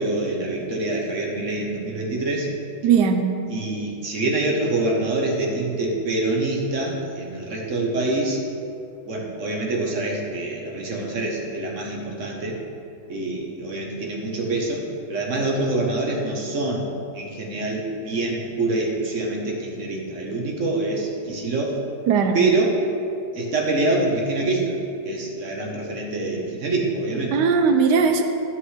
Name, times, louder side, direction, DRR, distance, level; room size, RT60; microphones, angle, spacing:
voice 1, 0.0-2.5 3.5-8.4 9.0-12.6 13.1-14.8 15.1-16.9 17.1-21.8 22.3-22.8 23.3-24.7 25.0-27.4, right 2 dB, 50° right, -1 dB, 1.2 m, -25 dB
voice 2, 2.8-3.3 22.1-22.4 27.3-28.2, right 6 dB, 75° right, 6 dB, 1.1 m, -18 dB
13.0 x 5.8 x 3.2 m, 2.7 s
omnidirectional pair, 2.0 m